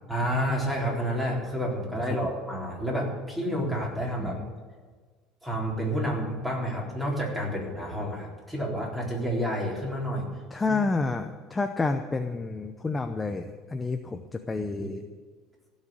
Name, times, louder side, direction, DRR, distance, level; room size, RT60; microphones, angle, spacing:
voice 1, 0.1-4.4 5.4-10.3 10.7-10.8 14.8-14.9, equal, 5° right, -3 dB, 4.0 m, -29 dB
voice 2, 10.5-15.0, left 3 dB, 15° left, 6 dB, 0.7 m, -29 dB
16.0 x 6.5 x 9.5 m, 1.5 s
cardioid pair, 145°, 0 cm